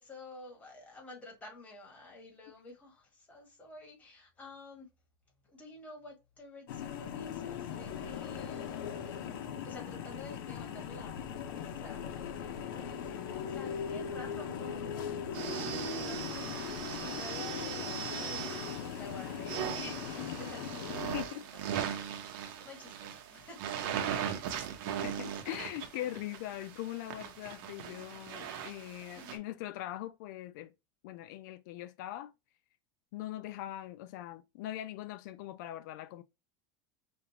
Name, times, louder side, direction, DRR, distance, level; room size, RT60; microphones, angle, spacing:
voice 1, 0.0-4.9 5.5-11.1 11.4-23.6 29.1-29.4, left 2 dB, 15° left, 1.5 m, -50 dB
sound 1, 6.7-21.2, left 8 dB, 80° left, 0.8 m, -40 dB
sound 2, 15.3-29.4, right 8 dB, 65° right, 0.9 m, -39 dB
voice 2, 21.0-21.4 25.0-30.7 31.0-32.3 33.1-36.2, left 14 dB, 60° left, 0.4 m, -41 dB
5.2 x 2.4 x 2.8 m
supercardioid pair, 170°, 12 cm